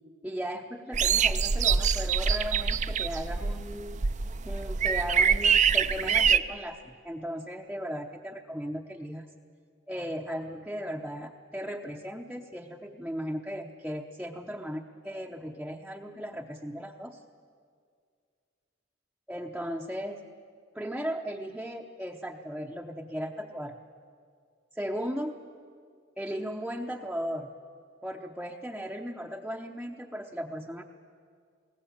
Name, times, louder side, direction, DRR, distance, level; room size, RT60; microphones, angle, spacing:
voice 1, 0.2-4.0 4.4-9.3 9.9-17.2 19.3-20.2 20.7-23.7 24.7-25.4 26.2-27.5 28.0-30.8, equal, 5° right, -1 dB, 0.7 m, -36 dB
sound 1, 0.9-6.4, right 6 dB, 40° right, 0.5 m, -25 dB
21.5 x 18.0 x 8.7 m, 2.1 s
head